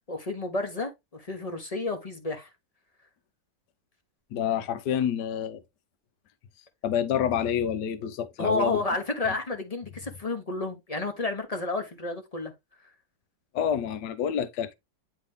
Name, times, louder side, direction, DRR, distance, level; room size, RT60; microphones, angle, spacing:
voice 1, 0.1-2.5 8.4-12.5, left 3 dB, 25° left, 0.9 m, -31 dB
voice 2, 4.3-5.6 6.8-8.8 9.2-9.3 13.5-14.7, left 8 dB, 70° left, 1.3 m, -28 dB
9.8 x 3.4 x 3.5 m
omnidirectional pair, 2.0 m